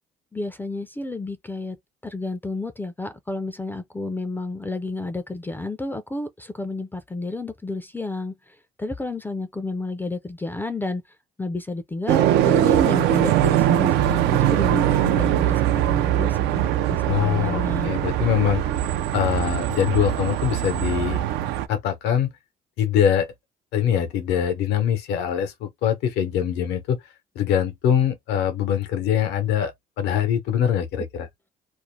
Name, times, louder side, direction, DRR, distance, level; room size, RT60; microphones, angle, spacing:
voice 1, 0.3-1.8 2.0-8.3 8.8-11.0 11.4-17.9, left 2 dB, 10° left, 0.3 m, -31 dB
sound 1, 12.1-21.7, right 12 dB, 80° right, 0.4 m, -21 dB
voice 2, 17.1-18.6 19.1-21.2 21.7-22.3 22.8-23.3 23.7-27.0 27.4-29.7 30.0-31.3, left 9 dB, 90° left, 0.8 m, -23 dB
2.5 x 2.0 x 3.1 m
cardioid pair, 110°, 17 cm